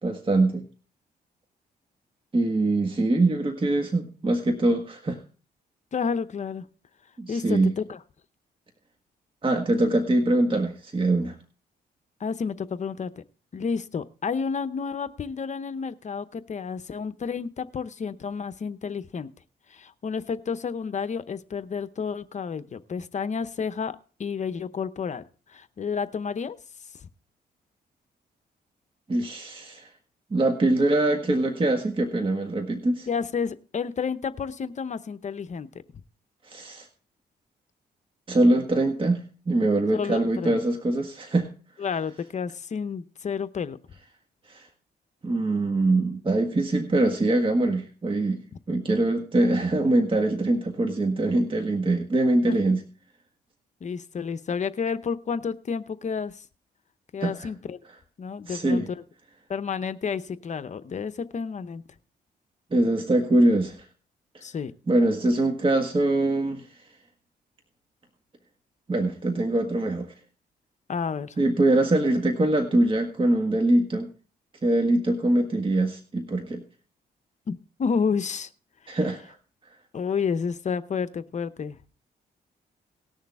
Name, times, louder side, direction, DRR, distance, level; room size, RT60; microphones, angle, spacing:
voice 1, 0.0-0.6 2.3-5.2 7.2-7.7 9.4-11.4 29.1-29.9 30.3-33.1 36.5-36.9 38.3-41.5 44.5-44.6 45.2-48.4 48.7-52.8 57.2-57.5 58.5-58.9 62.7-63.8 64.9-66.7 68.9-70.1 71.4-74.1 74.6-76.6 78.9-79.3, right 2 dB, 30° right, 4 dB, 1.6 m, -23 dB
voice 2, 5.9-6.6 7.3-8.0 12.2-13.2 13.5-19.3 19.7-25.2 25.5-26.6 33.1-35.7 39.9-40.6 41.8-43.8 52.5-52.6 53.8-56.4 57.1-57.8 58.2-59.0 59.5-61.8 64.4-64.7 70.9-71.4 77.5-78.5 78.8-79.0 79.9-81.8, left 6 dB, 45° left, 13 dB, 0.7 m, -30 dB
19.0 x 6.5 x 3.5 m, 0.38 s
cardioid pair, 90°, 17 cm